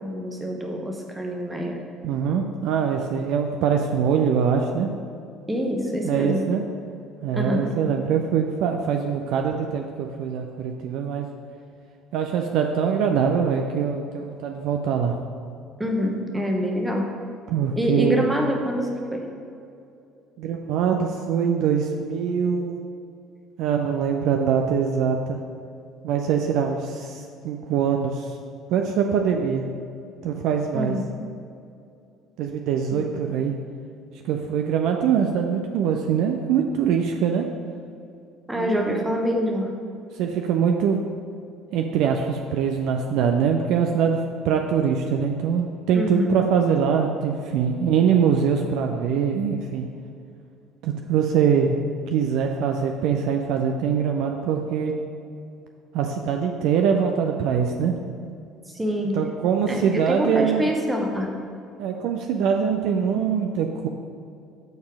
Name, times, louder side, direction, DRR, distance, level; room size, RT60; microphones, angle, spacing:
voice 1, 0.0-1.8 5.5-6.5 7.3-7.8 15.8-17.1 17.8-19.3 30.7-31.0 38.5-39.7 45.9-46.3 58.7-59.2 59.7-61.3, equal, 10° right, 1 dB, 1.0 m, -25 dB
voice 2, 2.0-4.9 6.0-6.6 7.2-11.3 12.1-15.2 17.5-18.3 20.4-22.8 23.6-25.4 26.0-28.3 28.7-29.6 30.2-31.0 32.4-33.5 34.2-37.5 38.6-39.1 40.1-41.0 41.7-44.2 44.4-49.9 50.8-51.8 52.1-54.9 55.9-57.9 59.1-60.7 61.8-63.9, right 7 dB, 55° right, 3 dB, 0.4 m, -23 dB
6.7 x 4.3 x 4.8 m, 2.5 s
figure-of-eight pair, 55°, 0 cm